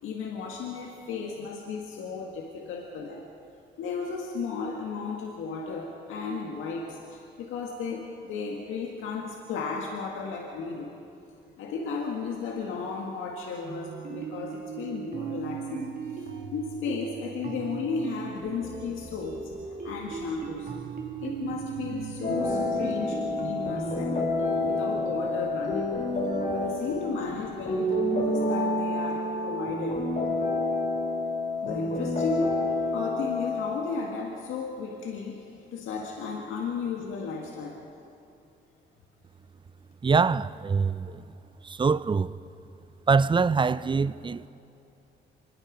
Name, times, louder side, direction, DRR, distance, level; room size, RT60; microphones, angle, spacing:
voice 1, 0.0-3.2 3.8-10.9 11.6-20.7 21.2-24.2 24.6-26.2 26.5-30.1 31.6-32.5 32.9-37.8, left 5 dB, 85° left, 1.9 m, -34 dB
sound 1, 13.6-26.7, right 6 dB, 45° right, 2.9 m, -38 dB
sound 2, 22.2-33.8, left 2 dB, 35° left, 3.9 m, -28 dB
voice 2, 40.0-41.3 41.6-42.3 43.1-44.5, right 5 dB, 25° right, 0.5 m, -24 dB
25.0 x 20.5 x 5.2 m
cardioid pair, 90°, 20 cm